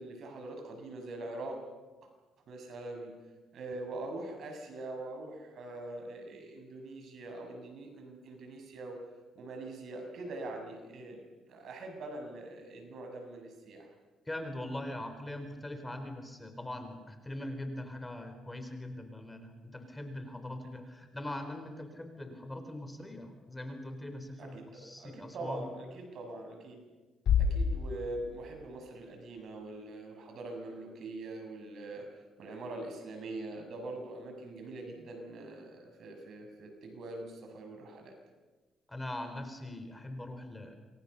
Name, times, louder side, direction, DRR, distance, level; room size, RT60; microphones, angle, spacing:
voice 1, 0.0-1.6 2.5-3.1 3.5-9.0 9.3-11.2 11.5-13.9 24.4-26.8 27.4-32.1 32.4-38.1, right 2 dB, 65° right, 4 dB, 6.8 m, -43 dB
voice 2, 14.3-25.7 38.9-40.8, left 1 dB, 15° left, 7 dB, 4.2 m, -41 dB
Bass drum, 27.3-28.9, left 6 dB, 75° left, 3.2 m, -30 dB
28.0 x 22.5 x 6.9 m, 1.3 s
cardioid pair, 90°, 0 cm